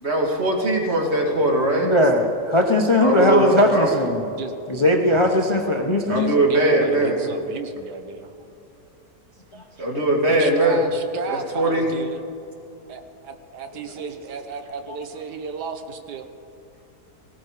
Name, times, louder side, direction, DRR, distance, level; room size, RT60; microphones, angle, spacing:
voice 1, 0.0-1.9 3.0-3.9 6.1-7.2 9.8-10.8 11.3-11.9, right 2 dB, 40° right, -1 dB, 2.5 m, -20 dB
voice 2, 1.8-4.3 4.7-6.3 9.5-9.6, left 1 dB, 25° left, 3 dB, 0.8 m, -19 dB
voice 3, 5.9-8.3 10.3-12.2 12.9-16.3, right 6 dB, 85° right, 7 dB, 1.6 m, -33 dB
18.0 x 16.0 x 4.9 m, 2.7 s
omnidirectional pair, 1.7 m